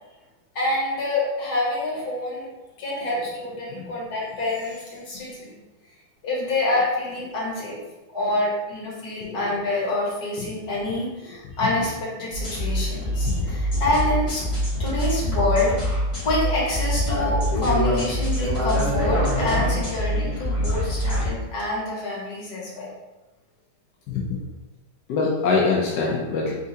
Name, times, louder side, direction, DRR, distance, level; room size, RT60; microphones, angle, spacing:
voice 1, 0.5-2.5 2.8-5.6 6.2-7.8 8.1-14.4 14.8-22.9, left 2 dB, 55° left, -5 dB, 1.8 m, -27 dB
sound 1, 12.3-21.3, equal, 15° left, 1.3 m, -24 dB
voice 2, 24.1-24.4 25.1-26.6, left 4 dB, 70° left, -4 dB, 1.0 m, -23 dB
4.4 x 3.6 x 2.7 m, 1.1 s
omnidirectional pair, 2.2 m